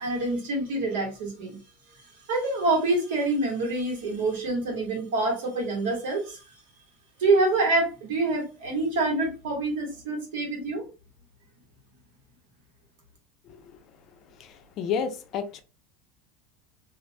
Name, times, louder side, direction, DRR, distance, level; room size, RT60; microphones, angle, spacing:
voice 1, 0.0-1.6 2.3-6.4 7.2-10.8, right 2 dB, 80° right, 1.2 m, -26 dB
voice 2, 13.4-13.8 14.2-15.6, left 7 dB, 45° left, 0.4 m, -32 dB
2.4 x 2.0 x 2.6 m
supercardioid pair, 130°, 0 cm